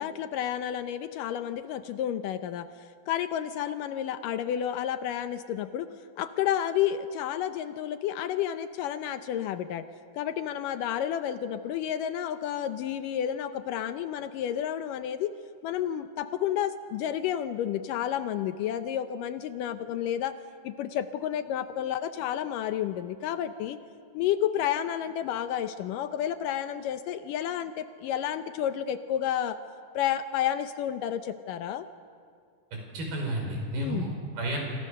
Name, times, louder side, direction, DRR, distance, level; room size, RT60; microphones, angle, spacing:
voice 1, 0.0-2.7 3.1-5.9 6.2-9.9 10.1-15.3 15.6-20.3 20.6-23.8 24.1-29.6 30.0-31.8 33.8-34.1, left 10 dB, 75° left, 10 dB, 2.2 m, -31 dB
voice 2, 32.7-34.6, right 1 dB, 85° right, 1 dB, 7.3 m, -32 dB
27.0 x 26.5 x 6.6 m, 2.2 s
omnidirectional pair, 4.3 m